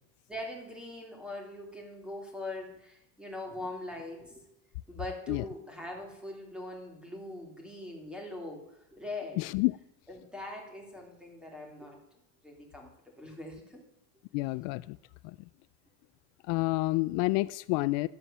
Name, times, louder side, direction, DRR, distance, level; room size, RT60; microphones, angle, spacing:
voice 1, 0.3-4.5 4.9-8.6 8.9-9.4 10.1-12.0 12.4-12.9 13.2-13.8, left 1 dB, ahead, 2.7 m, -42 dB
voice 2, 9.4-9.8 14.3-15.0 15.2-15.4 16.5-18.1, left 22 dB, 75° left, 0.5 m, -29 dB
12.5 x 7.2 x 6.7 m
cardioid pair, 165°, 39 cm